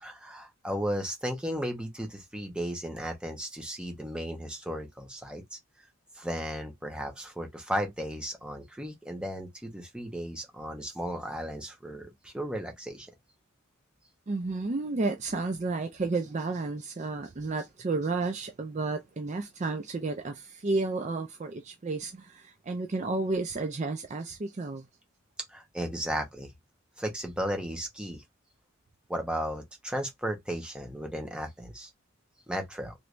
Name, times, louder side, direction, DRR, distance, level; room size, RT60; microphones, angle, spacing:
voice 1, 0.0-5.6 6.2-13.1 25.5-26.5 27.0-28.2 29.1-31.9 32.5-32.9, equal, 5° right, 0.7 m, -35 dB
voice 2, 14.3-24.8, right 3 dB, 35° right, 0.4 m, -32 dB
3.2 x 3.1 x 2.4 m
head